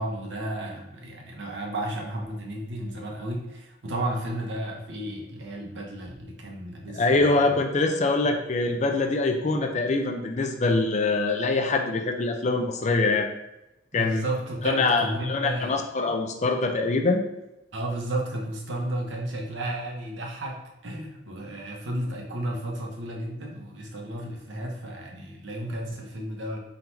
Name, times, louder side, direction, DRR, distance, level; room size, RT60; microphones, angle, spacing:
voice 1, 0.0-7.5 9.5-9.7 13.9-15.8 17.7-20.6 20.8-26.6, right 1 dB, 75° right, -1 dB, 0.9 m, -33 dB
voice 2, 6.9-13.3 13.9-14.3 14.6-17.2, left 3 dB, 40° left, 4 dB, 0.5 m, -24 dB
3.8 x 2.7 x 4.4 m, 0.93 s
head